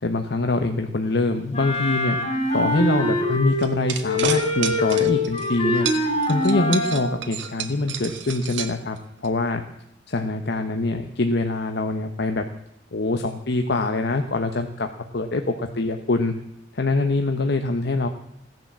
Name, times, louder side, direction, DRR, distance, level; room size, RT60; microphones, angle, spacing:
voice 1, 0.0-2.2 2.5-5.9 6.3-9.6 10.1-12.4 12.9-14.9 15.1-16.3 16.7-18.1, left 2 dB, 60° left, 6 dB, 1.0 m, -24 dB
Wind instrument woodwind instrument, 1.5-3.7 4.0-7.1, left 2 dB, 35° left, 4.0 m, -24 dB
sound 1, 3.6-5.5 5.8-9.3, right 7 dB, 75° right, 1.4 m, -31 dB
16.5 x 11.0 x 7.5 m, 0.76 s
head